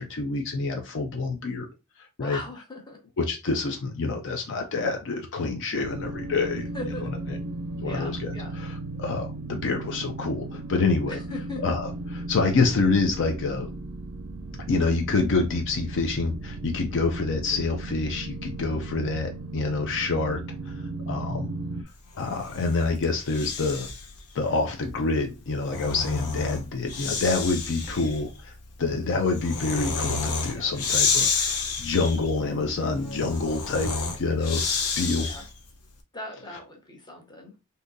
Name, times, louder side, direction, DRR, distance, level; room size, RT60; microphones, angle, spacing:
voice 1, 0.0-1.7 2.2-2.4 3.2-7.4 7.8-11.2 11.6-13.7 14.7-20.4 20.7-21.6 22.2-23.9 24.3-34.7 35.0-35.3 36.5-36.6, left 3 dB, 55° left, 4 dB, 0.5 m, -27 dB
voice 2, 2.2-3.0 6.7-7.1 7.8-8.5 11.3-11.6 28.9-29.1 30.5-30.7 35.2-35.4 36.1-37.5, left 2 dB, 20° left, 1 dB, 0.9 m, -38 dB
sound 1, 5.7-21.8, right 2 dB, 90° right, 0.4 m, -36 dB
Breathing, 22.2-24.1 25.4-35.6, left 5 dB, 85° left, 0.7 m, -30 dB
sound 2, 23.8-24.2 24.8-25.1 25.8-26.2 26.8-27.1 27.8-28.2 28.8-29.1 29.8-30.2, right 2 dB, 20° right, 0.4 m, -47 dB
3.7 x 2.7 x 2.5 m, 0.28 s
head